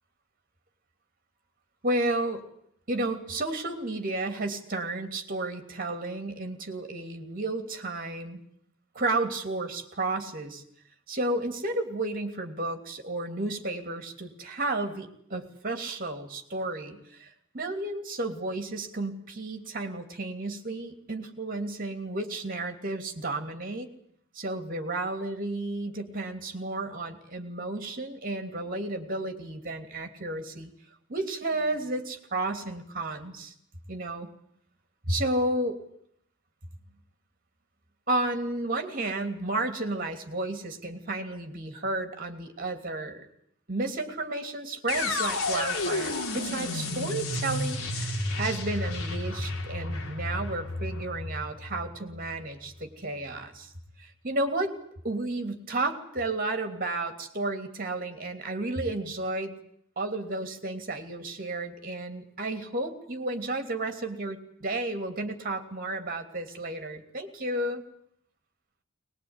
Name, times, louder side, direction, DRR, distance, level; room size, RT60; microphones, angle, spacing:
voice 1, 1.8-2.4 2.9-8.4 8.9-10.6 11.1-23.9 24.3-30.7 31.1-33.5 33.9-34.3 35.0-35.8 38.1-43.3 43.7-53.7 54.0-54.7 55.0-59.5 60.0-67.8, right 2 dB, 40° right, 6 dB, 3.1 m, -32 dB
sound 1, 44.9-52.8, left 2 dB, 75° left, 3.2 m, -32 dB
21.5 x 20.5 x 9.8 m, 0.70 s
head